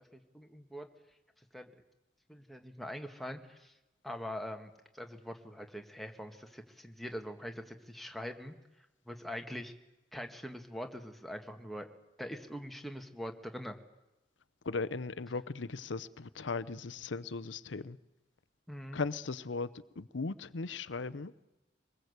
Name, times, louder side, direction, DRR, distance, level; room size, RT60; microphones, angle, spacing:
voice 1, 0.1-0.9 1.5-1.8 2.3-3.7 4.0-8.5 9.1-9.7 10.1-11.9 12.2-13.8 18.7-19.0, equal, ahead, 1.9 m, -43 dB
voice 2, 14.7-18.0 18.9-19.7 20.0-21.3, left 4 dB, 85° left, 0.8 m, -37 dB
24.5 x 20.5 x 8.2 m
head